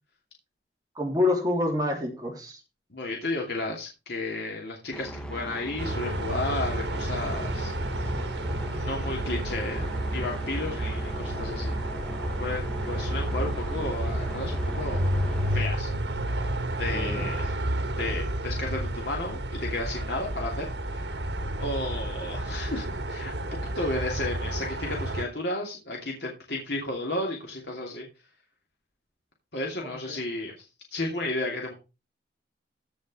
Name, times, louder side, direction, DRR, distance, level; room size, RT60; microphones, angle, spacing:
voice 1, 0.9-2.6 16.9-17.3 29.8-29.9, left 2 dB, 20° right, 1 dB, 3.0 m, -27 dB
voice 2, 2.9-7.7 8.0-8.1 8.7-11.8 12.4-15.2 15.5-15.9 16.8-17.6 18.0-21.1 21.6-28.1 29.5-30.6 30.9-31.7, left 2 dB, 70° left, 0 dB, 2.7 m, -33 dB
sound 1, 4.9-15.7, right 1 dB, 5° left, 1.3 m, -38 dB
sound 2, 5.8-25.2, right 1 dB, 80° right, 1.5 m, -31 dB
15.0 x 5.3 x 4.9 m, 0.28 s
head